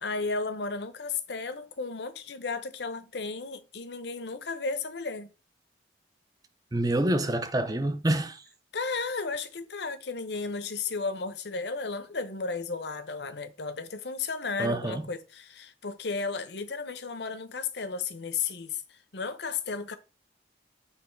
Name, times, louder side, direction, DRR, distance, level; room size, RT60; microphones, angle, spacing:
voice 1, 0.0-5.3 8.7-20.0, left 4 dB, 70° left, 0.8 m, -34 dB
voice 2, 6.7-8.4 14.6-15.0, right 1 dB, 20° right, 0.6 m, -27 dB
8.3 x 3.1 x 4.5 m
head